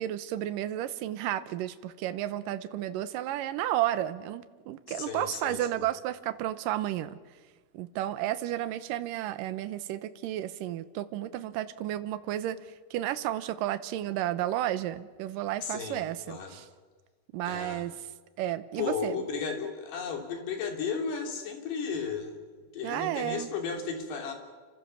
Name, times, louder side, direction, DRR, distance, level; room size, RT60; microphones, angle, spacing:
voice 1, 0.0-7.2 7.7-16.7 17.3-18.0 18.4-19.2 22.8-23.5, right 13 dB, 70° right, 12 dB, 2.2 m, -32 dB
voice 2, 4.9-5.9 15.6-16.6 17.5-17.9 18.8-22.4 22.7-24.3, left 5 dB, 80° left, 3 dB, 5.3 m, -34 dB
29.0 x 24.5 x 7.1 m, 1.4 s
omnidirectional pair, 4.8 m